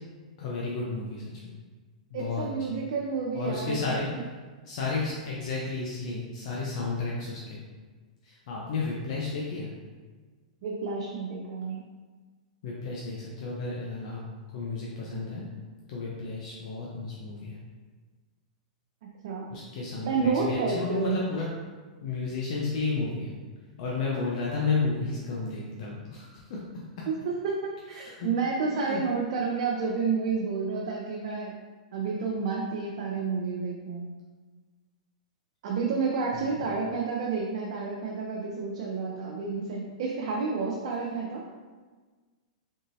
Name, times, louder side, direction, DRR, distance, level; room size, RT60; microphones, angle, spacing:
voice 1, 0.4-1.5 2.1-2.8 3.3-4.1 4.6-7.6 8.2-9.7 12.6-14.2 14.5-15.5 15.9-17.6 19.5-21.5 22.0-23.3 23.8-26.6 27.9-28.3 28.7-29.0 36.3-36.6, left 3 dB, 60° left, -4 dB, 0.7 m, -32 dB
voice 2, 2.1-3.8 4.1-4.2 10.6-11.9 19.0-19.6 20.0-21.2 27.1-31.5 31.9-34.1 35.6-41.5, right 4 dB, 60° right, -2 dB, 0.5 m, -30 dB
3.8 x 3.7 x 2.6 m, 1.4 s
hypercardioid pair, 120°, 4 cm